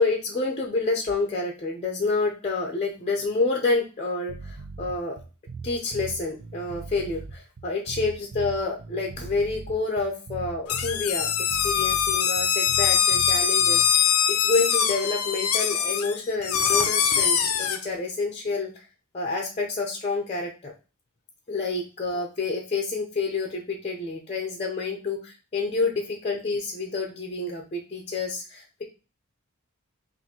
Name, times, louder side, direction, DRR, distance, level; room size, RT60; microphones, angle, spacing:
voice 1, 0.0-5.2 5.6-18.9 19.1-20.7 21.5-28.8, left 3 dB, 30° left, 1 dB, 0.7 m, -28 dB
sound 1, 4.3-13.9, right 4 dB, 55° right, 0.6 m, -39 dB
sound 2, 10.7-17.8, left 8 dB, 85° left, 0.6 m, -23 dB
5.7 x 2.6 x 2.9 m, 0.32 s
head